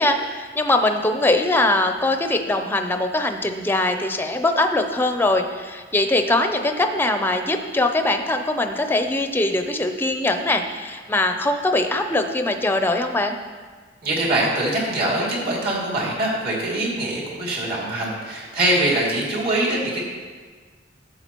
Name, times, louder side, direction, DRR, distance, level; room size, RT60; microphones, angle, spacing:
voice 1, 0.0-13.4, left 2 dB, 10° left, 6 dB, 0.5 m, -22 dB
voice 2, 14.0-20.0, right 1 dB, 55° right, -5 dB, 2.6 m, -23 dB
12.5 x 7.5 x 3.0 m, 1.4 s
head